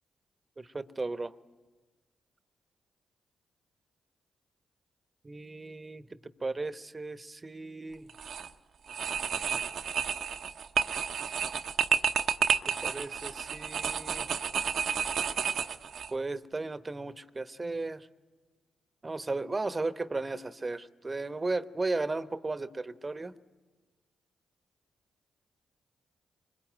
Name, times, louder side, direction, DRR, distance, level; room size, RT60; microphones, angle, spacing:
voice 1, 0.6-1.3 5.2-8.1 12.7-14.3 16.1-18.1 19.0-23.3, right 3 dB, 30° right, 13 dB, 1.1 m, -35 dB
sound 1, 8.1-8.5 8.9-16.1, right 7 dB, 65° right, 0.9 m, -31 dB
24.5 x 21.5 x 9.2 m, 1.3 s
hypercardioid pair, 40°, 0 cm